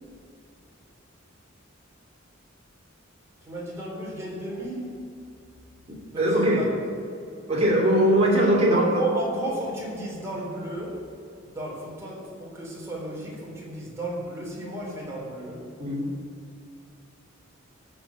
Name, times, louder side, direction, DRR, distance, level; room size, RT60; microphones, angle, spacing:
voice 1, 3.4-5.0 6.1-6.7 8.7-11.1 11.5-15.7, right 1 dB, 15° right, -4 dB, 3.8 m, -33 dB
voice 2, 5.9-6.7 7.5-8.8 15.8-16.1, right 1 dB, 30° right, -4 dB, 3.0 m, -21 dB
14.5 x 5.5 x 9.3 m, 2.5 s
head